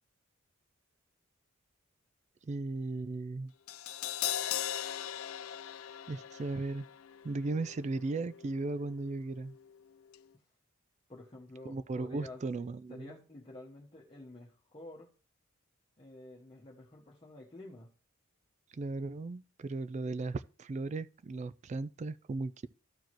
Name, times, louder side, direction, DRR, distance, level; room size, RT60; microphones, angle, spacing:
voice 1, 2.4-3.5 6.1-6.9 7.2-9.6 11.7-13.1 18.7-22.7, right 3 dB, 35° right, 0.3 m, -36 dB
Crash cymbal, 3.7-9.8 10.1-10.2, left 11 dB, 80° left, 0.5 m, -40 dB
voice 2, 11.1-12.4 12.9-15.1 16.0-17.9, left 2 dB, 25° left, 1.1 m, -50 dB
13.5 x 4.7 x 3.0 m
head